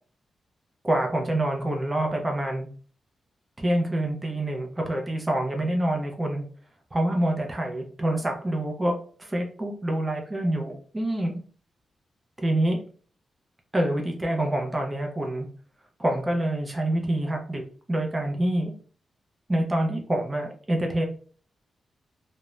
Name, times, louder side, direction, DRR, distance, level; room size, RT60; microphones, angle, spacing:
voice 1, 0.8-2.7 3.6-6.4 6.9-8.9 9.2-11.4 12.4-12.8 13.7-15.5 16.0-17.6 17.9-18.7 19.5-21.0, right 1 dB, 15° right, 1 dB, 0.4 m, -26 dB
2.4 x 2.0 x 3.0 m, 0.42 s
wide cardioid pair, 155°, 0 cm